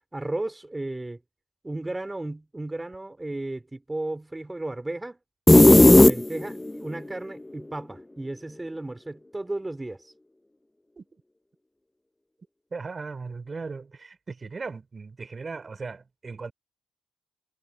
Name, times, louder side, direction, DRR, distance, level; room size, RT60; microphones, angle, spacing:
voice 1, 0.1-1.2 1.6-5.2 5.9-10.1, right 2 dB, 15° right, 2.9 m, -34 dB
sound 1, 5.5-6.7, left 1 dB, 10° left, 0.6 m, -13 dB
voice 2, 12.7-16.5, right 4 dB, 30° right, 3.5 m, -37 dB
cardioid pair, 90°, 0 cm